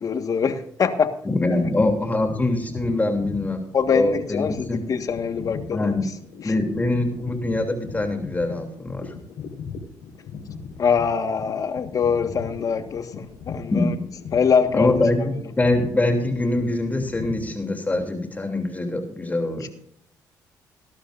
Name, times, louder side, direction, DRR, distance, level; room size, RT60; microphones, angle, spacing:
voice 1, 0.0-1.1 1.6-1.7 3.7-5.9 6.4-6.5 10.8-13.9 14.3-15.3 19.6-19.7, left 6 dB, 50° left, 9 dB, 1.6 m, -23 dB
voice 2, 1.2-3.6 3.9-4.8 5.7-6.1 6.4-9.1 13.7-14.0 14.7-19.7, left 2 dB, 20° left, 4 dB, 3.1 m, -23 dB
sound 1, 1.5-17.5, left 5 dB, 85° left, 4.5 m, -38 dB
19.5 x 11.5 x 2.6 m, 0.66 s
cardioid pair, 90°, 8 cm